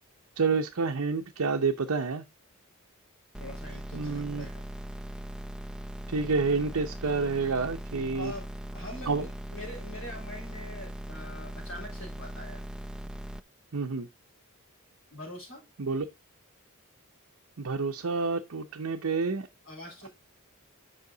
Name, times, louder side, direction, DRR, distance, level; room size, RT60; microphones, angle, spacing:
voice 1, 0.4-2.2 3.9-4.5 6.1-8.3 9.1-9.3 13.7-14.1 15.8-16.1 17.6-19.5, right 4 dB, 70° right, 0.7 m, -29 dB
sound 1, 3.3-13.4, right 1 dB, 5° right, 0.3 m, -40 dB
voice 2, 3.4-4.7 8.1-12.6 15.1-15.6 19.6-20.1, left 1 dB, 65° left, 3.7 m, -44 dB
8.3 x 5.7 x 3.8 m
head